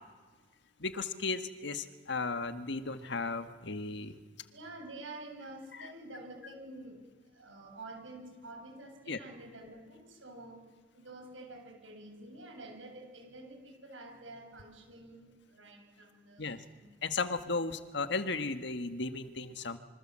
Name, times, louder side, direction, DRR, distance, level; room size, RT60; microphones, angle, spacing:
voice 1, 0.8-4.2 5.7-5.9 9.1-9.2 16.4-16.6 17.0-19.8, left 3 dB, 65° left, 9 dB, 1.7 m, -35 dB
voice 2, 4.5-7.0 7.4-10.6 10.9-16.9, right 2 dB, 85° right, 4 dB, 7.5 m, -48 dB
27.5 x 26.0 x 7.7 m, 1.5 s
head